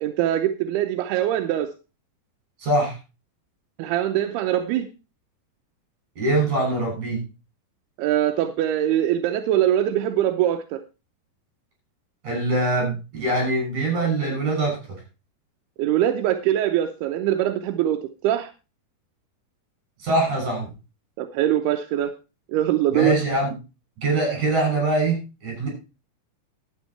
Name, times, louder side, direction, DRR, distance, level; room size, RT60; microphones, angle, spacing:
voice 1, 0.0-1.7 3.8-4.9 8.0-10.8 15.8-18.5 21.2-22.1 22.5-23.1, right 12 dB, 85° right, 7 dB, 2.7 m, -22 dB
voice 2, 2.6-3.0 6.2-7.2 12.2-14.8 20.0-20.7 22.9-23.5 24.0-25.7, right 2 dB, 50° right, 1 dB, 7.7 m, -23 dB
11.5 x 8.8 x 4.4 m, 0.30 s
omnidirectional pair, 4.5 m